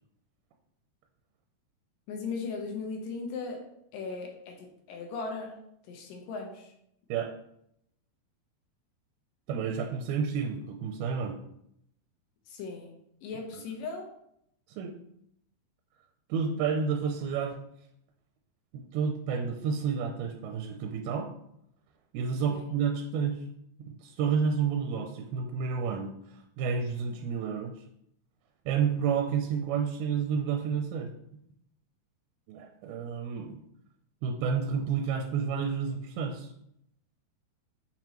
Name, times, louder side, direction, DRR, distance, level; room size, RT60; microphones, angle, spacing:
voice 1, 2.1-3.6 3.9-5.5 5.9-6.7 12.5-12.9 13.2-14.1 22.5-22.6, left 4 dB, 70° left, 2 dB, 2.4 m, -37 dB
voice 2, 9.5-11.4 14.8-14.9 16.3-17.6 18.7-21.3 22.1-23.4 23.9-26.1 26.6-27.7 28.7-31.1 32.5-33.6 34.2-36.5, right 6 dB, 85° right, 3 dB, 2.5 m, -30 dB
6.9 x 6.0 x 3.0 m, 0.75 s
omnidirectional pair, 4.5 m